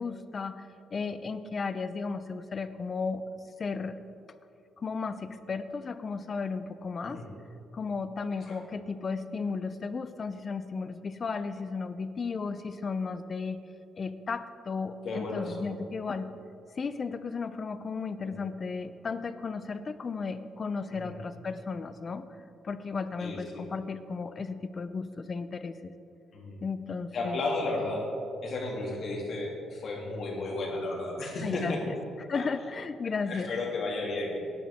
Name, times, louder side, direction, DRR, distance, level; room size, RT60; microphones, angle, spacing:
voice 1, 0.0-3.3 3.6-4.0 4.8-7.2 7.7-13.6 13.9-16.3 16.8-22.3 22.6-25.9 26.6-27.4 31.4-33.5, left 4 dB, 40° left, 12 dB, 0.7 m, -34 dB
voice 2, 15.0-15.7 18.2-18.4 21.0-21.1 23.2-23.6 26.3-26.6 27.1-28.1 28.4-31.8 32.3-32.4 33.3-34.3, left 2 dB, 60° left, -2 dB, 3.0 m, -33 dB
18.0 x 10.0 x 3.7 m, 2.7 s
cardioid pair, 90°, 0 cm